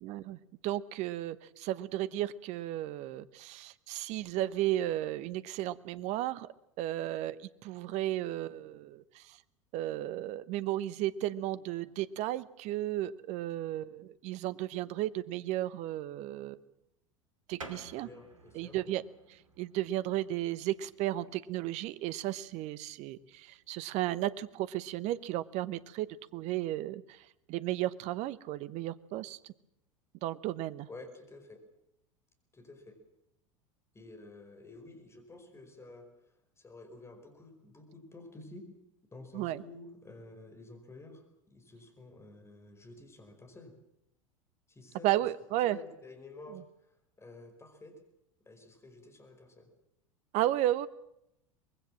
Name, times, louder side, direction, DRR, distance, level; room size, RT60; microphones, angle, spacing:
voice 1, 0.0-6.5 6.8-9.4 9.7-16.6 17.5-18.1 18.5-19.0 19.6-26.1 26.3-27.2 27.5-29.4 30.2-30.9 39.3-39.6 45.0-45.8 50.3-50.9, right 14 dB, 45° right, 16 dB, 0.9 m, -34 dB
sound 1, 17.6-27.8, right 3 dB, 80° right, 2.5 m, -56 dB
voice 2, 18.0-18.9 30.9-31.6 32.5-33.0 33.9-36.1 36.6-38.6 39.1-43.8 44.7-45.3 45.6-48.0 48.4-49.7, left 2 dB, 15° left, 6 dB, 5.3 m, -51 dB
24.0 x 20.5 x 7.5 m, 0.81 s
figure-of-eight pair, 80°, 17 cm